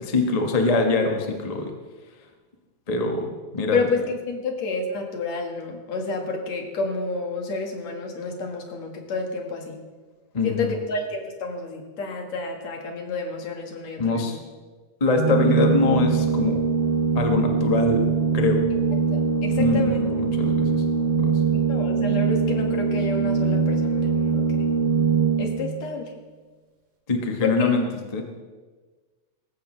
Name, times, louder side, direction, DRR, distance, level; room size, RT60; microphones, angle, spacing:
voice 1, 0.1-1.7 2.9-3.8 10.3-10.7 14.0-14.4 15.0-16.6 17.1-18.0 18.3-18.6 19.6-20.7 21.2-21.3 27.1-27.8 28.1-28.2, left 3 dB, 45° left, 3 dB, 0.4 m, -23 dB
voice 2, 3.7-9.8 10.4-14.4 19.1-20.0 21.7-24.4 25.4-26.1 27.4-27.7, left 3 dB, 65° left, 2 dB, 2.9 m, -29 dB
Organ, 15.1-25.8, right 5 dB, 60° right, 3.3 m, -22 dB
19.0 x 15.0 x 3.3 m, 1.4 s
omnidirectional pair, 3.4 m